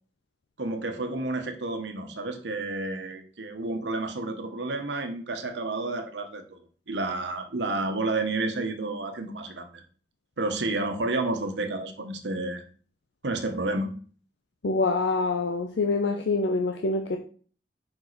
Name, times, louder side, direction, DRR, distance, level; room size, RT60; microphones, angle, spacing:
voice 1, 0.6-6.6 6.9-9.8 10.4-12.6 13.2-13.9, right 2 dB, 85° right, 6 dB, 1.0 m, -30 dB
voice 2, 14.6-17.2, left 3 dB, 80° left, 4 dB, 0.6 m, -25 dB
5.2 x 4.8 x 4.0 m, 0.43 s
head